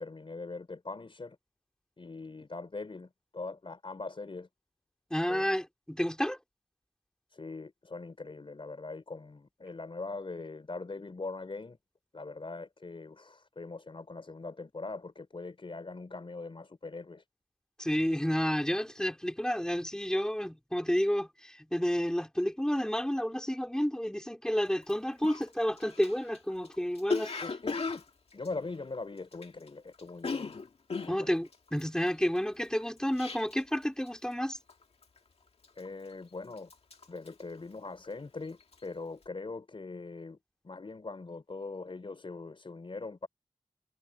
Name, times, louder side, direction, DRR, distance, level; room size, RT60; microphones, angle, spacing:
voice 1, 0.0-1.4 2.0-4.5 5.3-5.5 7.3-11.8 12.1-17.2 27.4-28.0 28.3-30.6 31.0-31.3 35.8-36.7 37.1-40.4 40.6-43.3, left 3 dB, 60° left, 4.0 m, -41 dB
voice 2, 5.1-6.4 17.8-27.3 31.1-34.6, equal, 5° left, 4.1 m, -30 dB
Cough, 24.8-24.9 25.2-29.7 29.9-33.8 34.1-34.4 34.7-35.2 35.6-36.2 36.5-38.2 38.5-38.8, left 4 dB, 80° left, 2.1 m, -38 dB
wide cardioid pair, 50°, 10 cm